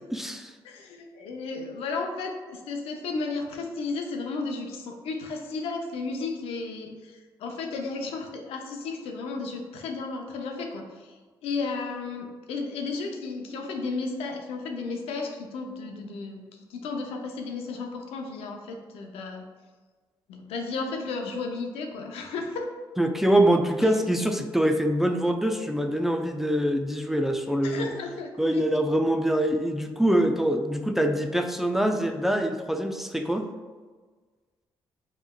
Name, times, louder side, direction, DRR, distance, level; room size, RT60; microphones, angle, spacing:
voice 1, 0.1-0.5 23.0-27.9 28.4-33.5, right 1 dB, 5° right, 5 dB, 0.4 m, -24 dB
voice 2, 0.6-11.1 11.4-19.5 20.3-22.7 27.6-28.6, left 3 dB, 90° left, 2 dB, 0.6 m, -33 dB
5.3 x 3.1 x 2.3 m, 1.4 s
cardioid pair, 80°, 10 cm